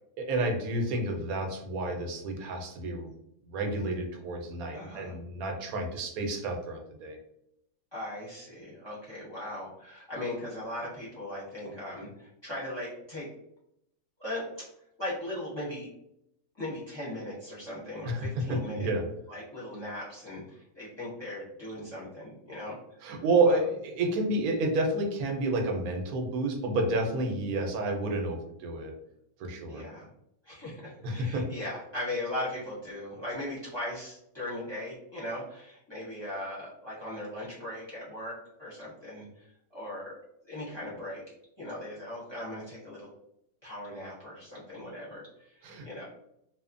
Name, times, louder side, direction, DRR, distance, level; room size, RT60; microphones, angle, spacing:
voice 1, 0.2-3.1 3.5-7.2 18.0-18.4 18.7-19.0 23.0-28.9 29.4-29.8 31.0-31.5 45.6-45.9, right 2 dB, 90° right, 3 dB, 1.1 m, -30 dB
voice 2, 4.7-5.2 7.9-13.3 14.2-14.7 15.0-15.9 16.6-18.9 19.3-23.6 29.6-30.1 30.4-40.2 40.5-41.2 41.6-43.1 43.6-46.0, left 1 dB, 25° left, -7 dB, 0.7 m, -39 dB
2.9 x 2.1 x 2.5 m, 0.77 s
omnidirectional pair, 1.5 m